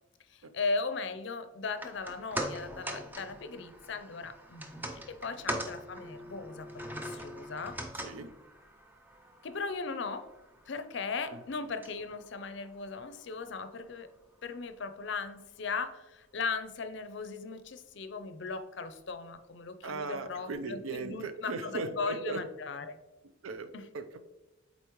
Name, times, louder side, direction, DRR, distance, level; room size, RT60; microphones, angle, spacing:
voice 1, 0.3-7.8 9.4-10.3 10.7-14.1 14.4-23.0 23.7-23.9, left 4 dB, 60° left, 10 dB, 0.5 m, -38 dB
sound 1, 1.6-14.0 14.3-14.4, right 1 dB, 10° right, 0.4 m, -42 dB
voice 2, 19.8-22.4 23.4-24.2, right 3 dB, 80° right, 10 dB, 0.5 m, -38 dB
8.1 x 4.0 x 3.0 m, 1.0 s
head